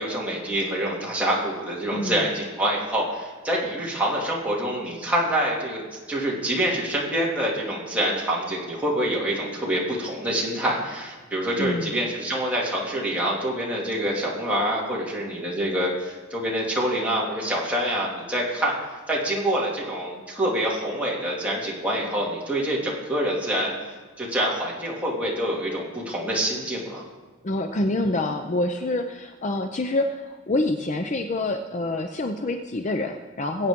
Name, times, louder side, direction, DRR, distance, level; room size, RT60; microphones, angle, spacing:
voice 1, 0.0-23.7 24.2-27.0, right 1 dB, 5° right, -5 dB, 2.5 m, -26 dB
voice 2, 1.9-2.2 11.6-12.0 27.4-33.7, left 2 dB, 35° left, 5 dB, 0.5 m, -26 dB
22.0 x 8.1 x 3.7 m, 1.4 s
head